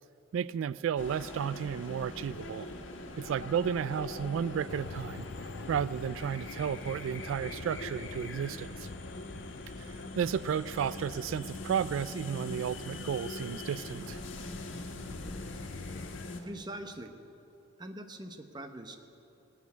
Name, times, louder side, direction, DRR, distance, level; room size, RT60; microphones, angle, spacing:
voice 1, 0.3-2.7 3.2-5.3 5.7-8.9 9.8-14.2, right 8 dB, 90° right, 18 dB, 0.3 m, -33 dB
sound 1, 1.0-16.4, left 2 dB, 75° left, 1.6 m, -42 dB
sound 2, 4.7-16.2, left 4 dB, 55° left, 0.4 m, -47 dB
voice 2, 16.4-17.2 17.8-19.0, right 1 dB, 20° right, 7 dB, 0.9 m, -42 dB
17.0 x 8.4 x 9.6 m, 2.9 s
head